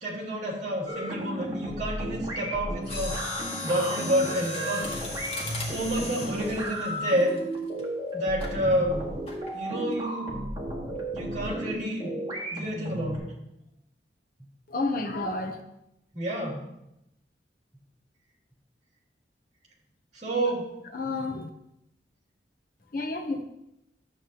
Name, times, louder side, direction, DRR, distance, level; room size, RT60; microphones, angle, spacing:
voice 1, 0.0-3.2 3.6-4.9 5.6-7.4 8.1-9.0 9.5-10.4 11.1-12.1 12.5-13.3 16.1-16.6 20.1-20.7, right 1 dB, 40° right, -3 dB, 2.8 m, -29 dB
sound 1, 0.9-13.2, equal, 25° right, 1.8 m, -34 dB
Mechanisms, 2.8-7.8 8.4-8.6 9.3-9.6 9.9-10.0, left 3 dB, 35° left, 1.8 m, -37 dB
voice 2, 14.7-15.6 20.9-21.5 22.9-23.4, left 2 dB, 55° left, 3 dB, 0.9 m, -30 dB
11.5 x 7.8 x 3.0 m, 0.85 s
head